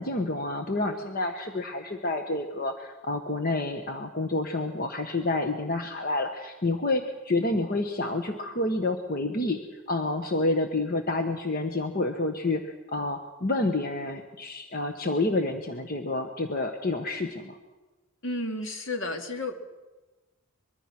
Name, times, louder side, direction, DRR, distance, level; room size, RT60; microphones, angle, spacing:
voice 1, 0.0-9.6 9.9-17.6, left 2 dB, 45° left, 5 dB, 1.3 m, -29 dB
voice 2, 18.2-19.5, left 2 dB, 65° left, 5 dB, 2.3 m, -32 dB
23.5 x 22.5 x 6.1 m, 1.2 s
head